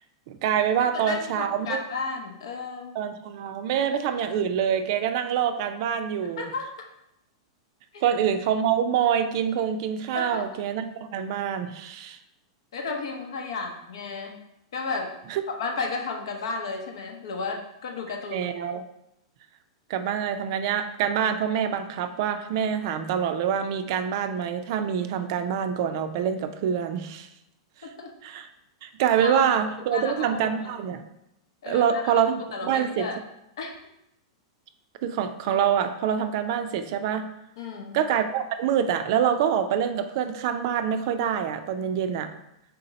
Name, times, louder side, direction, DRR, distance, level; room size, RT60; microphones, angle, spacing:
voice 1, 0.3-1.8 3.0-6.5 8.0-12.2 15.3-15.4 18.3-18.8 19.9-27.3 27.8-27.9 28.2-28.5 28.8-31.0 31.7-32.4 32.6-33.1 35.0-37.3 37.9-42.3, right 8 dB, 55° right, 8 dB, 0.4 m, -26 dB
voice 2, 0.9-3.0 6.4-6.7 7.9-8.1 10.1-10.5 12.7-14.4 14.7-15.1 15.5-18.5 27.8-28.1 29.2-29.4 29.9-30.5 31.6-33.2 33.6-33.7 37.6-38.0, left 4 dB, 80° left, 3 dB, 0.8 m, -33 dB
3.7 x 2.8 x 4.0 m, 0.83 s
hypercardioid pair, 130°, 3 cm